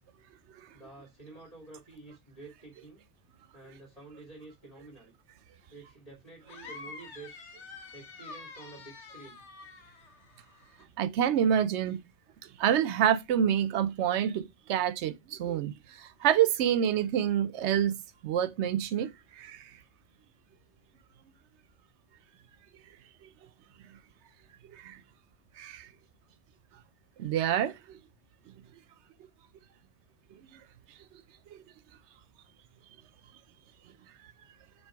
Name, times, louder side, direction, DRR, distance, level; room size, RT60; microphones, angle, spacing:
voice 1, 0.7-3.0 3.5-5.1 5.7-7.4 7.9-9.4, right 3 dB, 35° left, 2.6 m, -50 dB
sound 1, 6.5-10.9, left 4 dB, 85° left, 1.4 m, -47 dB
voice 2, 11.0-12.0 12.6-15.7 16.2-18.0 18.2-19.1 19.4-19.6 24.7-25.0 25.6-25.9 27.2-27.7 31.5-31.6, right 9 dB, 85° right, 0.9 m, -27 dB
7.4 x 3.1 x 4.5 m
omnidirectional pair, 1.2 m